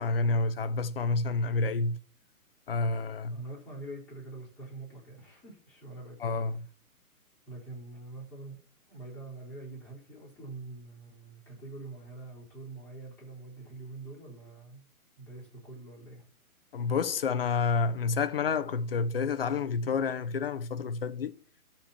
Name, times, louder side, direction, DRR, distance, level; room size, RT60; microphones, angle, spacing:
voice 1, 0.0-2.0 2.7-3.4 6.2-6.7 16.7-21.4, left 4 dB, 40° left, 0.6 m, -29 dB
voice 2, 3.3-6.2 7.5-8.6 8.9-14.8 15.2-16.2, right 2 dB, 5° left, 4.2 m, -45 dB
12.5 x 4.4 x 7.0 m
hypercardioid pair, 160°, 43 cm